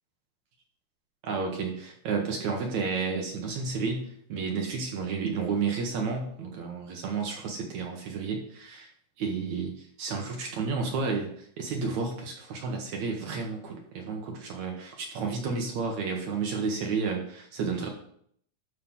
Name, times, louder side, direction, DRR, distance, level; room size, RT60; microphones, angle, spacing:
voice 1, 1.2-8.9 9.2-17.9, right 4 dB, 70° right, 1 dB, 1.8 m, -31 dB
13.0 x 5.6 x 3.7 m, 0.64 s
omnidirectional pair, 4.6 m